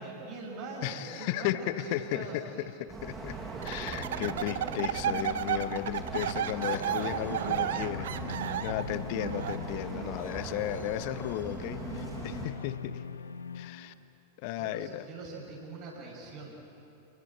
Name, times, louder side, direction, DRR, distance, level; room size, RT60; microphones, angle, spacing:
voice 1, 0.0-2.7 14.6-16.6, right 3 dB, 45° right, -3 dB, 6.6 m, -42 dB
voice 2, 0.8-3.4 3.6-13.0 13.5-13.9 14.4-15.1, left 14 dB, 45° left, 14 dB, 1.0 m, -35 dB
sound 1, 2.9-12.5, right 3 dB, 20° right, 6.9 m, -40 dB
sound 2, 3.6-9.6, right 10 dB, 60° right, 0.9 m, -32 dB
sound 3, 6.6-14.3, left 6 dB, 75° left, 0.9 m, -43 dB
28.5 x 20.5 x 9.0 m, 2.8 s
figure-of-eight pair, 90°, 0 cm